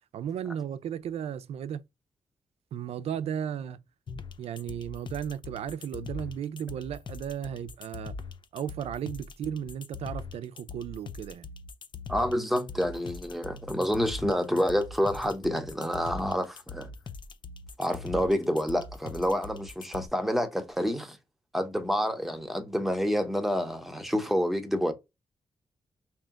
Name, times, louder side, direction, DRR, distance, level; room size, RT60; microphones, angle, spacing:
voice 1, 0.1-1.8 2.7-3.8 4.4-8.2 8.5-11.5, right 9 dB, 85° right, 0.4 m, -35 dB
sound 1, 4.1-20.1, left 4 dB, 50° left, 0.5 m, -42 dB
voice 2, 12.1-16.9 17.8-21.2 21.5-24.9, equal, ahead, 0.9 m, -28 dB
3.3 x 2.9 x 3.6 m
cardioid pair, 75°, 10 cm